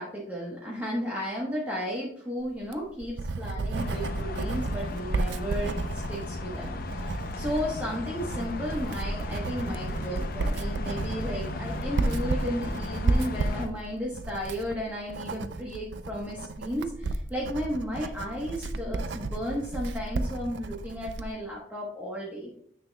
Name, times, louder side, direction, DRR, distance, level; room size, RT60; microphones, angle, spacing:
voice 1, 0.0-22.6, equal, 10° right, -4 dB, 1.1 m, -34 dB
Writing, 2.6-21.3, right 2 dB, 70° right, 0.5 m, -32 dB
sound 1, 3.7-13.7, left 2 dB, 50° left, 0.6 m, -36 dB
9.5 x 5.9 x 2.2 m, 0.66 s
head